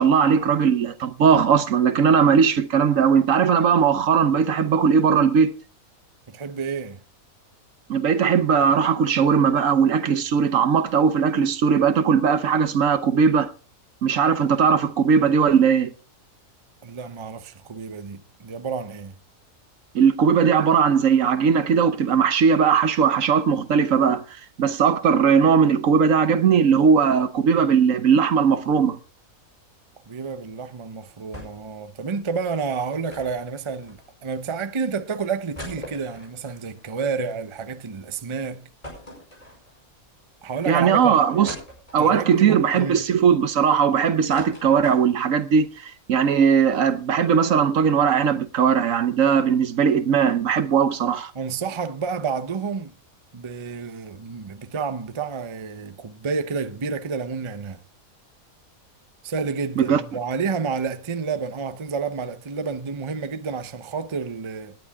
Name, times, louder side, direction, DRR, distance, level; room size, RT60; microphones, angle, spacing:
voice 1, 0.0-5.5 7.9-13.5 14.0-15.9 19.9-24.2 24.6-29.0 40.7-41.5 41.9-51.3 59.8-60.0, right 6 dB, 70° right, 1.2 m, -19 dB
voice 2, 6.3-7.0 16.8-19.1 30.1-38.7 40.4-41.3 42.0-43.1 51.3-52.9 53.3-57.8 59.2-64.8, right 5 dB, 30° right, 0.6 m, -30 dB
sound 1, 31.3-31.8 32.0-32.1 33.1-34.4 34.9-35.0 35.3-37.7 38.1-38.2 38.8-40.0 40.5-40.6 41.4-42.3 42.8-43.8 44.1-45.4 45.8-45.9 46.1-46.3, equal, 25° left, 5.3 m, -41 dB
18.5 x 10.0 x 3.6 m
omnidirectional pair, 1.5 m